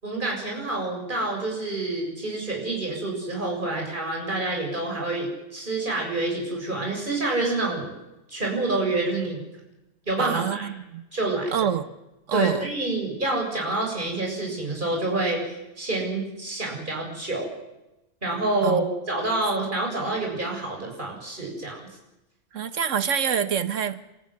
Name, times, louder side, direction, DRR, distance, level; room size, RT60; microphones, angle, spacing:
voice 1, 0.0-7.9 8.3-9.4 10.1-10.7 11.1-11.7 12.3-17.5 18.2-21.9, right 2 dB, 40° right, -1 dB, 7.6 m, -27 dB
voice 2, 10.2-11.0 11.5-11.9 12.3-12.7 18.6-18.9 22.5-24.2, right 8 dB, 90° right, 12 dB, 1.5 m, -26 dB
29.5 x 14.5 x 9.8 m, 0.95 s
omnidirectional pair, 1.3 m